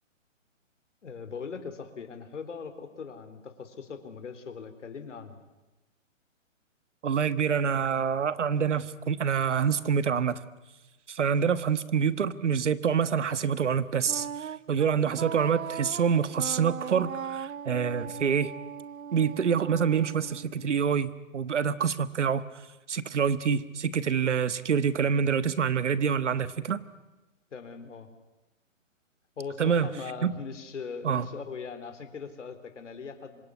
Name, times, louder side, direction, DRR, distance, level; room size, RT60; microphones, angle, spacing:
voice 1, 1.0-5.4 27.5-28.1 29.4-33.5, left 5 dB, 65° left, 9 dB, 3.6 m, -40 dB
voice 2, 7.0-10.4 11.1-18.5 19.1-22.4 22.9-26.8 29.6-29.9 30.2-30.3 31.0-31.3, right 7 dB, 65° right, 15 dB, 1.5 m, -26 dB
Wind instrument woodwind instrument, 14.1-21.0, right 8 dB, 90° right, 0.9 m, -39 dB
26.0 x 22.5 x 9.6 m, 1.1 s
hypercardioid pair, 170°, 39 cm